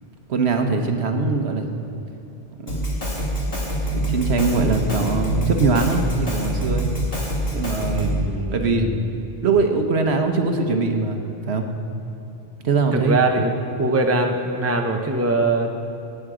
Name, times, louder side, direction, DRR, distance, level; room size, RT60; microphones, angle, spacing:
voice 1, 0.3-1.8 2.6-3.1 3.9-6.9 7.5-8.1 8.5-8.9 9.4-11.2 11.5-11.7 12.6-13.2, right 4 dB, 75° right, 5 dB, 1.3 m, -22 dB
Drum kit, 2.7-8.3, equal, 60° left, 2.8 m, -25 dB
voice 2, 7.9-9.0 12.9-15.7, right 2 dB, 15° right, 3 dB, 0.8 m, -22 dB
17.5 x 8.8 x 5.0 m, 2.8 s
omnidirectional pair, 1.1 m